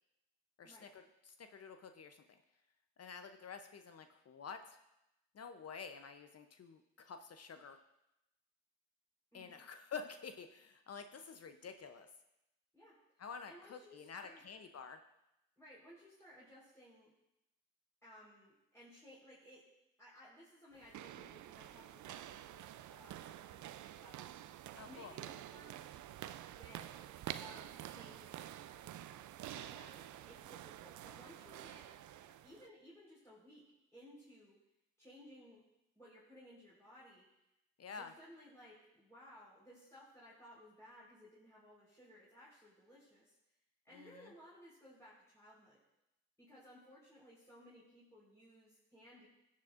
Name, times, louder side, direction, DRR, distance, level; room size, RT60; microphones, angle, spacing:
voice 1, 0.6-2.4 3.0-4.8 5.3-7.8 9.3-12.1 13.2-15.0 24.7-25.1 37.8-38.1 43.9-44.3, left 5 dB, 50° left, 8 dB, 0.7 m, -49 dB
voice 2, 12.7-14.4 15.6-17.1 18.0-19.6 20.0-24.4 24.8-26.0 26.5-27.1 27.4-28.5 29.5-31.9 32.3-33.6 33.9-34.6 35.0-35.6 35.9-37.3 38.0-43.4 43.8-45.8 46.4-49.3, equal, 10° left, -8 dB, 4.2 m, -59 dB
sound 1, 20.7-32.7, right 12 dB, 65° right, 0.5 m, -49 dB
16.5 x 7.4 x 2.5 m, 0.89 s
supercardioid pair, 50°, 33 cm